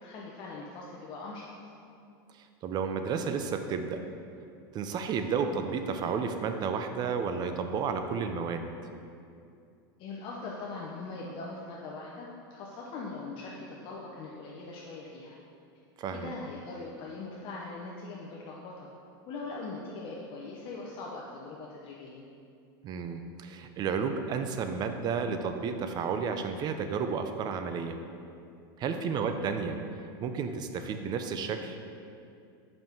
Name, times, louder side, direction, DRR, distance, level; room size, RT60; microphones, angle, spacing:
voice 1, 0.0-1.5 10.0-15.4 16.1-18.9 19.3-22.2 28.9-29.2, left 3 dB, 45° left, -3 dB, 0.8 m, -41 dB
voice 2, 2.6-4.0 4.7-8.7 16.0-16.3 22.8-28.0 28.8-29.8 30.2-31.8, right 6 dB, 35° right, 7 dB, 0.5 m, -32 dB
5.3 x 5.3 x 4.5 m, 2.5 s
supercardioid pair, 125°, 13 cm